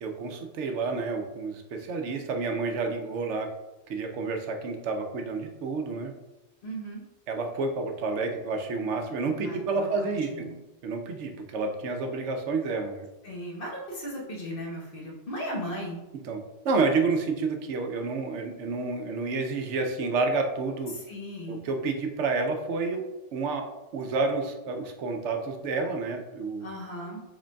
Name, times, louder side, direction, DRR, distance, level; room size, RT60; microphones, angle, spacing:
voice 1, 0.0-3.5 3.9-6.1 7.3-10.5 10.8-13.1 16.2-16.4 16.6-20.9 21.5-23.0 23.3-23.7 23.9-26.7, right 3 dB, 80° right, 4 dB, 0.9 m, -29 dB
voice 2, 6.6-7.0 9.4-10.5 13.2-16.0 20.9-21.6 26.6-27.2, equal, 50° left, -3 dB, 1.2 m, -37 dB
5.0 x 3.7 x 2.2 m, 1.0 s
omnidirectional pair, 1.2 m